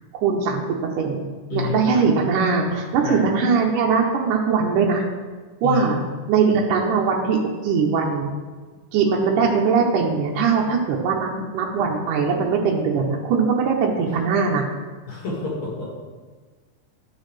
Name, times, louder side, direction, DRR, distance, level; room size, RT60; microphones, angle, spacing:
voice 1, 0.1-0.6 1.0-5.0 5.6-6.0 6.3-7.4 7.6-8.3 8.9-14.6, right 5 dB, 80° right, -1 dB, 2.4 m, -21 dB
voice 2, 15.1-15.9, left 4 dB, 60° left, -4 dB, 2.8 m, -28 dB
12.0 x 6.2 x 3.2 m, 1.4 s
omnidirectional pair, 3.7 m